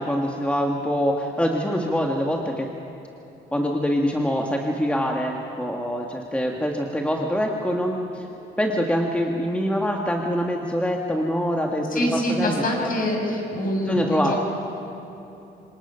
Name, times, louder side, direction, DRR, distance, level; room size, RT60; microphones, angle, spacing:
voice 1, 0.0-2.7 3.5-8.3 8.6-12.5 12.8-12.9 13.9-14.3, equal, 5° left, 1 dB, 1.5 m, -24 dB
voice 2, 11.9-14.4, left 1 dB, 45° left, 0 dB, 5.9 m, -25 dB
26.0 x 20.0 x 5.6 m, 2.8 s
cardioid pair, 90°, 20 cm